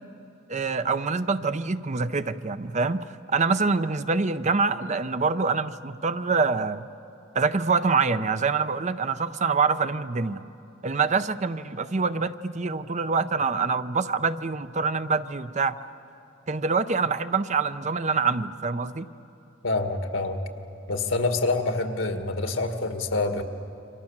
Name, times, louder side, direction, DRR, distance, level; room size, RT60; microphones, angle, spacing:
voice 1, 0.5-6.8 7.3-10.4 10.8-15.8 16.5-19.1, right 4 dB, 35° right, 12 dB, 0.6 m, -25 dB
voice 2, 19.6-20.4 20.9-23.4, left 3 dB, 80° left, 6 dB, 2.0 m, -26 dB
29.0 x 25.0 x 7.3 m, 2.8 s
head